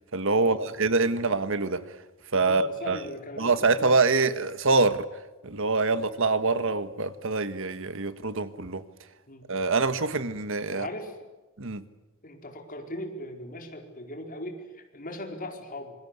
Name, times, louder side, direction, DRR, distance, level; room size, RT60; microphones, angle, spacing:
voice 1, 0.1-1.8 2.3-3.0 3.4-5.0 5.4-8.8 9.5-10.9 11.6-11.8, right 3 dB, 65° right, 1.6 m, -25 dB
voice 2, 2.5-3.9 5.9-6.1 9.3-9.4 10.7-11.2 12.2-15.9, left 1 dB, 40° left, 4.6 m, -39 dB
26.5 x 21.0 x 8.2 m
head